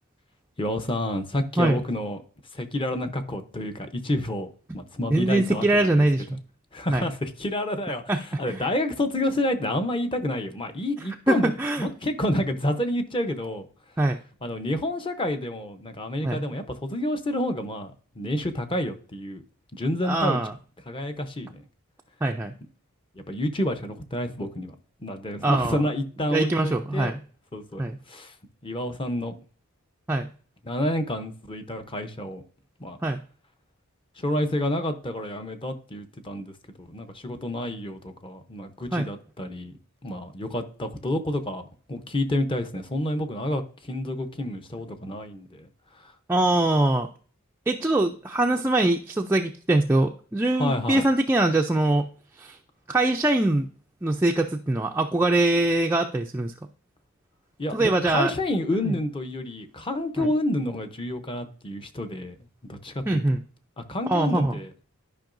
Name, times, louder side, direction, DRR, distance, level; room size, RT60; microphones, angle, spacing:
voice 1, 0.6-2.2 2.5-4.5 4.7-6.0 6.7-11.5 11.8-13.7 14.4-19.4 19.7-20.4 20.9-21.6 23.1-24.7 25.0-27.1 27.5-27.8 28.1-28.3 28.6-29.3 30.6-32.4 32.8-33.0 34.2-39.7 40.0-41.6 41.9-46.1 50.6-51.1 57.6-62.4 62.6-63.0 63.8-64.7, left 1 dB, 25° left, 0.7 m, -29 dB
voice 2, 5.1-6.4 6.9-7.0 8.1-8.2 8.5-8.6 11.3-11.9 14.0-14.2 16.2-16.5 20.0-20.5 22.2-22.5 25.4-25.8 26.3-27.2 27.8-28.0 30.1-30.3 33.0-33.2 38.9-39.1 46.3-47.1 47.7-52.1 52.4-52.6 52.9-53.7 54.0-56.5 57.7-58.3 58.8-58.9 60.2-60.3 63.1-63.4 64.1-64.6, right 2 dB, 10° right, 0.3 m, -23 dB
12.0 x 5.4 x 2.6 m
head